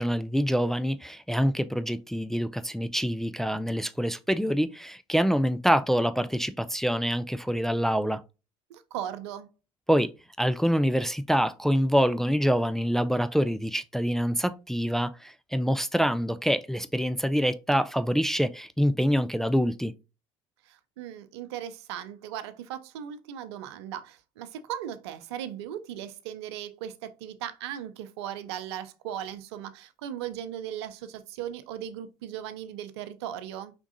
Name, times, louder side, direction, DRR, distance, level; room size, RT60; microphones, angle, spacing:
voice 1, 0.0-8.2 9.9-10.1 10.4-19.9, equal, 5° left, 0.3 m, -26 dB
voice 2, 8.7-9.5 20.6-33.7, right 10 dB, 80° right, 0.6 m, -38 dB
5.2 x 3.5 x 2.6 m
hypercardioid pair, 70°, 14 cm